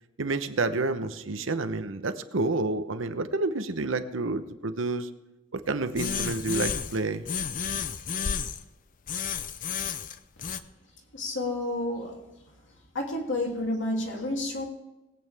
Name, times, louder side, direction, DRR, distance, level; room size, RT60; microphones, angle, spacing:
voice 1, 0.2-5.1 5.5-7.2, right 3 dB, 70° right, 10 dB, 0.9 m, -29 dB
sound 1, 5.9-7.0 7.2-8.6 9.1-10.6, left 6 dB, 40° left, 0.6 m, -31 dB
voice 2, 11.1-12.1 12.9-14.7, left 1 dB, 65° left, 0 dB, 2.7 m, -30 dB
20.5 x 8.8 x 3.5 m, 1.0 s
head